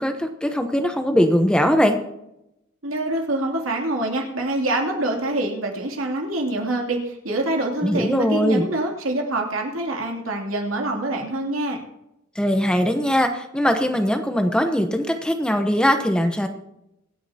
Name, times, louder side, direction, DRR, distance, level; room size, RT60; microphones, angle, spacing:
voice 1, 0.0-2.0 7.8-8.7 12.4-16.5, equal, 5° left, 5 dB, 0.9 m, -20 dB
voice 2, 2.8-11.8, right 2 dB, 70° right, 1 dB, 2.9 m, -25 dB
24.5 x 9.4 x 2.9 m, 0.85 s
head